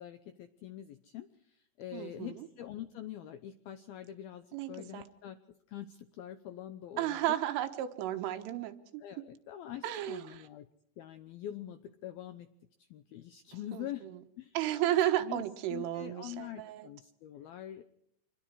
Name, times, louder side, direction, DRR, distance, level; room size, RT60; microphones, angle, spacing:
voice 1, 0.0-5.4 5.7-7.4 9.0-10.7 11.0-12.5 12.9-14.1 14.4-14.6 15.2-15.4 15.7-17.9, left 12 dB, 85° left, 9 dB, 2.1 m, -44 dB
voice 2, 1.9-2.5 4.5-5.1 7.0-9.3 9.8-10.5 13.7-14.2 14.6-16.9, right 13 dB, 90° right, 7 dB, 3.9 m, -33 dB
27.0 x 21.5 x 4.9 m, 0.74 s
omnidirectional pair, 5.6 m